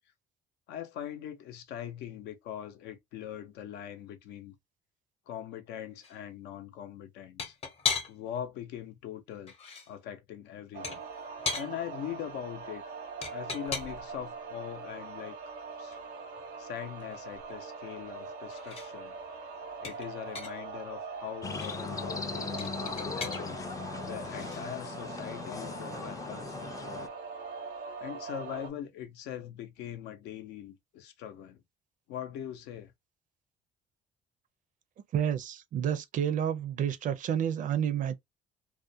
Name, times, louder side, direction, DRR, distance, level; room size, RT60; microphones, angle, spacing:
voice 1, 0.7-4.5 5.3-7.6 8.1-9.5 9.9-11.0 11.5-12.8 13.2-15.3 15.8-16.0 16.6-19.2 19.8-23.6 24.0-27.1 28.0-31.6 32.1-32.9, left 10 dB, 85° left, 0.6 m, -41 dB
sound 1, 6.0-6.2 7.4-8.4 9.3-9.9 10.8-11.7 13.2-14.1 15.9-16.0 16.4-16.5 16.8-18.2 18.5-18.9 19.8-20.7 21.4-21.8 22.6-23.4 24.2-24.6, left 5 dB, 35° left, 0.7 m, -37 dB
sound 2, 10.7-28.7, right 4 dB, 90° right, 0.9 m, -42 dB
sound 3, 21.4-27.1, left 5 dB, 20° left, 0.3 m, -38 dB
voice 2, 35.1-38.1, right 9 dB, 50° right, 0.5 m, -30 dB
2.4 x 2.1 x 2.6 m
cardioid pair, 110°, 17 cm